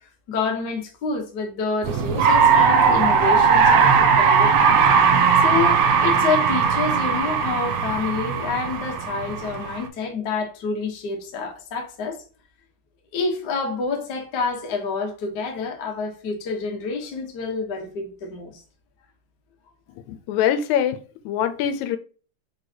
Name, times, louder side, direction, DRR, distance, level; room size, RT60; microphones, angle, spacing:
voice 1, 0.3-4.8 5.4-12.2 13.1-18.6, left 4 dB, 60° left, 1.1 m, -28 dB
sound 1, 1.8-9.8, right 6 dB, 75° right, 1.6 m, -18 dB
voice 2, 20.1-22.0, left 9 dB, 80° left, 1.9 m, -24 dB
4.6 x 3.9 x 2.8 m
omnidirectional pair, 3.3 m